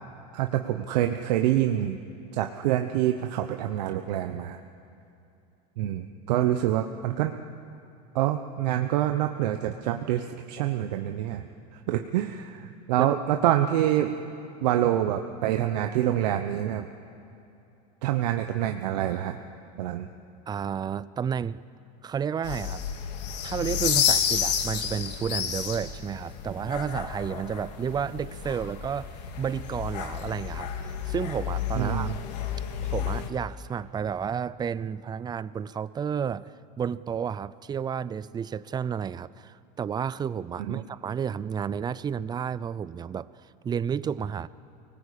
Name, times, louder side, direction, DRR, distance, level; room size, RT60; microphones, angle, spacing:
voice 1, 0.3-2.0 2.3-4.6 5.8-7.3 8.1-11.4 11.9-14.1 14.6-16.9 18.0-19.4 19.8-20.1 31.8-32.1 40.7-40.8, right 12 dB, 80° right, 6 dB, 1.0 m, -26 dB
voice 2, 20.5-21.6 22.0-22.8 23.4-32.1 32.9-44.5, right 7 dB, 20° right, 18 dB, 0.5 m, -31 dB
sound 1, 22.4-33.3, left 8 dB, 80° left, 2.2 m, -31 dB
24.0 x 19.0 x 8.5 m, 2.8 s
supercardioid pair, 125°, 21 cm